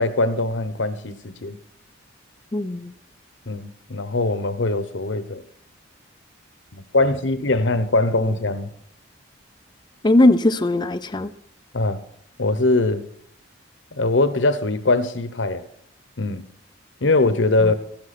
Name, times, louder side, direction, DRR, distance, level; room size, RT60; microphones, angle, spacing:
voice 1, 0.0-1.6 3.5-5.4 6.7-8.7 11.7-12.0 12.4-13.0 14.0-15.6 16.2-16.4 17.0-17.7, left 2 dB, 65° left, 0.9 m, -21 dB
voice 2, 2.5-2.9 10.0-11.3 17.6-17.7, left 1 dB, 20° left, 0.5 m, -19 dB
14.0 x 11.5 x 4.3 m
head